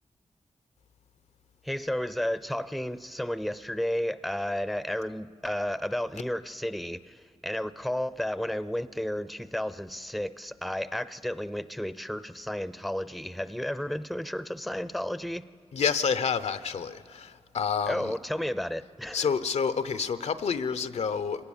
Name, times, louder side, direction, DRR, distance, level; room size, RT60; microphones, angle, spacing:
voice 1, 1.6-15.4 17.9-19.3, left 1 dB, ahead, 0.5 m, -32 dB
voice 2, 15.7-18.1 19.1-21.4, left 6 dB, 90° left, 0.7 m, -29 dB
25.5 x 18.5 x 7.2 m
wide cardioid pair, 80°, 11 cm